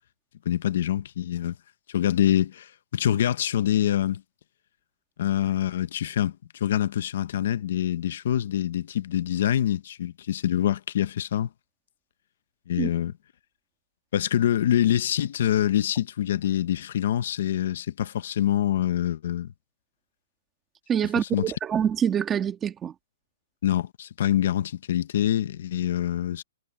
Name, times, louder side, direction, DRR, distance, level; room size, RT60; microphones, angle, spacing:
voice 1, 0.5-1.6 1.9-4.2 5.2-11.5 12.7-13.1 14.1-19.5 21.3-21.5 23.6-26.4, left 11 dB, 45° left, 0.8 m, -25 dB
voice 2, 20.9-22.9, right 8 dB, 10° right, 2.0 m, -25 dB
hypercardioid pair, 180°, 0 cm